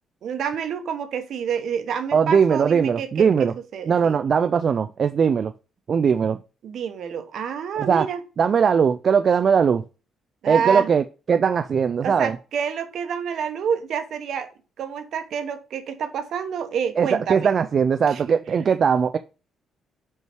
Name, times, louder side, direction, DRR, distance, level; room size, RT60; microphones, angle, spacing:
voice 1, 0.2-4.2 6.6-8.2 10.4-10.9 12.0-14.5 14.8-17.5 18.1-18.4, right 7 dB, 70° right, 1.0 m, -28 dB
voice 2, 2.1-3.5 3.9-5.5 5.9-6.4 7.8-8.1 8.4-9.8 10.5-12.4 17.0-19.2, right 6 dB, 50° right, 0.3 m, -20 dB
5.5 x 4.7 x 4.4 m
cardioid pair, 90°, 0 cm